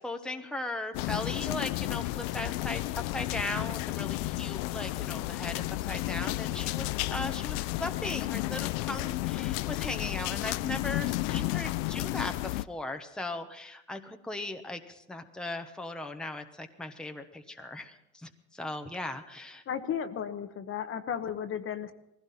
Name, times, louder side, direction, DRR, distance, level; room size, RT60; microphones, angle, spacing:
voice 1, 0.0-2.8 3.1-19.6, left 2 dB, ahead, 5 dB, 1.1 m, -38 dB
sound 1, 0.9-12.6, left 19 dB, 85° left, 0.5 m, -32 dB
voice 2, 19.7-21.9, left 8 dB, 40° left, 8 dB, 1.1 m, -34 dB
20.0 x 16.0 x 4.3 m, 0.86 s
cardioid pair, 115°, 33 cm